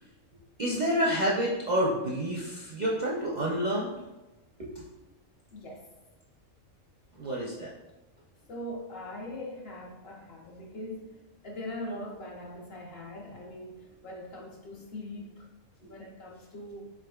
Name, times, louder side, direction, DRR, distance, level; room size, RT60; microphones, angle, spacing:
voice 1, 0.6-3.9 4.6-4.8 7.2-7.7 15.8-15.9, equal, 55° right, -4 dB, 0.5 m, -29 dB
voice 2, 5.5-5.9 8.4-15.5 15.9-16.8, left 1 dB, 55° left, -1 dB, 0.9 m, -41 dB
4.9 x 4.1 x 2.3 m, 1.0 s
omnidirectional pair, 1.4 m